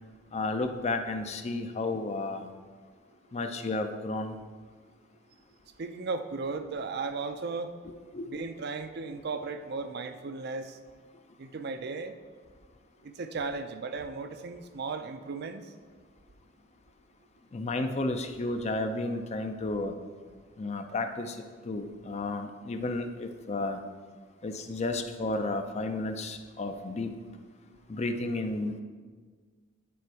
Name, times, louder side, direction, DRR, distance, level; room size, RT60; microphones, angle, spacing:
voice 1, 0.3-2.5 3.3-4.4 8.1-8.3 17.5-20.0 20.6-21.4 21.6-23.8 24.4-27.1 27.9-28.8, left 2 dB, 35° left, 7 dB, 0.5 m, -32 dB
voice 2, 5.8-7.7 8.3-10.8 11.4-12.1 13.0-15.6, right 4 dB, 55° right, 8 dB, 0.5 m, -36 dB
9.3 x 4.2 x 4.7 m, 1.5 s
head